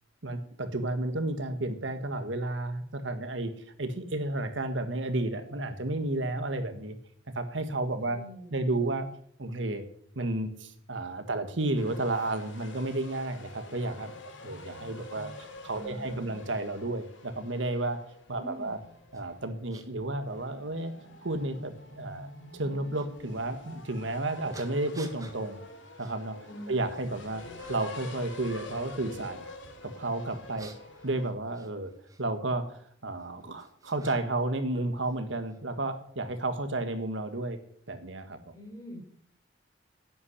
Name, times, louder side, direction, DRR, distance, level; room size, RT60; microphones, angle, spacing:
voice 1, 0.2-3.5 3.8-7.0 7.3-8.2 8.5-9.1 9.4-9.8 10.1-14.1 14.4-18.0 18.3-18.8 19.1-20.9 21.2-25.6 26.0-26.4 26.7-27.4 27.7-29.5 29.8-30.7 31.0-31.9 32.2-37.6 37.9-38.6, right 2 dB, 75° right, 8 dB, 1.6 m, -32 dB
voice 2, 8.0-8.7 15.7-16.4 18.3-18.9 26.5-26.8 27.3-27.6 38.5-39.0, equal, 20° left, 1 dB, 5.0 m, -45 dB
sound 1, 11.7-31.3, left 1 dB, 75° left, 3.0 m, -47 dB
sound 2, 19.1-19.2 19.7-19.9 20.7-20.8 22.9-23.1 24.5-25.4 26.0-26.2 26.6-27.1 27.6-28.1 30.3-32.2 33.2-34.5 34.7-35.6, right 3 dB, 20° right, 1.7 m, -51 dB
11.0 x 8.7 x 9.8 m, 0.64 s
head